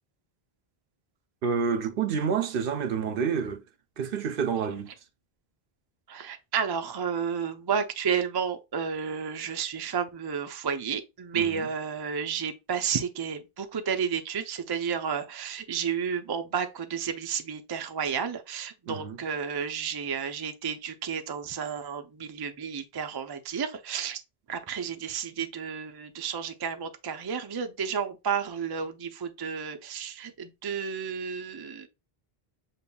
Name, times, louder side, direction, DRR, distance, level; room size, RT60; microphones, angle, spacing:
voice 1, 1.4-3.6 4.0-4.9 11.3-11.7 18.9-19.2, right 6 dB, 65° right, 0.7 m, -28 dB
voice 2, 6.1-24.2 24.5-31.9, right 7 dB, 35° right, 0.4 m, -31 dB
6.9 x 2.9 x 2.3 m
omnidirectional pair, 1.0 m